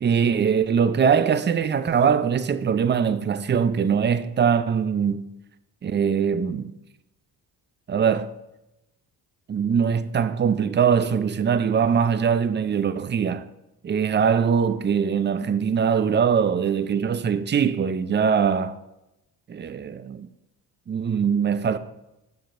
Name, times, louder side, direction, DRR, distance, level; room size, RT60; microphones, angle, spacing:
voice 1, 0.0-5.2 5.8-6.7 7.9-8.3 9.5-13.4 13.8-18.7 19.5-20.3 20.9-21.8, right 7 dB, 25° right, 0.5 m, -22 dB
10.5 x 6.5 x 2.6 m
supercardioid pair, 65°, 42 cm